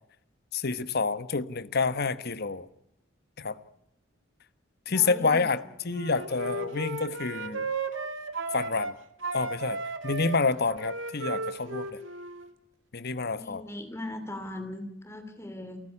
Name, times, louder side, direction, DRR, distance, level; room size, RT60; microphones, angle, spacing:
voice 1, 0.5-2.7 3.4-3.6 4.9-7.7 8.5-8.9 9.3-11.9 12.9-13.6, left 4 dB, 55° left, 1.2 m, -28 dB
voice 2, 4.9-5.7 6.4-6.6 13.2-15.8, left 1 dB, 15° left, 2.8 m, -40 dB
Wind instrument woodwind instrument, 5.9-8.9 9.2-12.5, right 3 dB, 75° right, 2.2 m, -35 dB
29.0 x 14.5 x 9.9 m
head